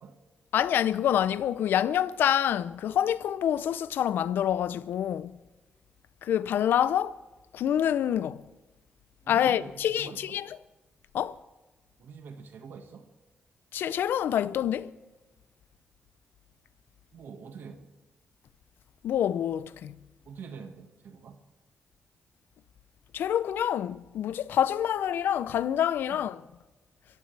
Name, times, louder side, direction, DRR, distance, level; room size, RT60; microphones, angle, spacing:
voice 1, 0.5-5.4 6.2-7.2 7.5-8.4 9.3-10.6 11.1-11.4 13.7-14.9 19.0-20.0 23.1-26.4, left 10 dB, 80° left, 0.5 m, -27 dB
voice 2, 9.2-10.4 12.0-13.1 17.1-17.9 20.2-21.4 26.1-26.2, right 6 dB, 75° right, 1.6 m, -45 dB
26.0 x 15.0 x 3.4 m
cardioid pair, 70°, 3 cm